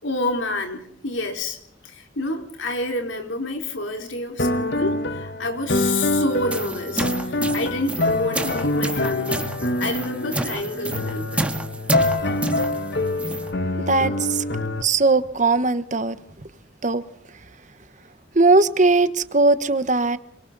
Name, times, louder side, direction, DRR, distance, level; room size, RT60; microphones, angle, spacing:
voice 1, 0.0-1.6 1.8-9.5 9.8-11.5, left 2 dB, 90° left, 4.5 m, -28 dB
sound 1, 4.4-14.8, left 2 dB, 60° left, 1.2 m, -25 dB
sound 2, 6.3-13.5, right 1 dB, 5° right, 1.7 m, -29 dB
voice 2, 13.7-14.4 14.8-16.2 16.8-17.0 18.3-20.2, right 3 dB, 40° right, 1.2 m, -19 dB
27.0 x 25.0 x 4.1 m
head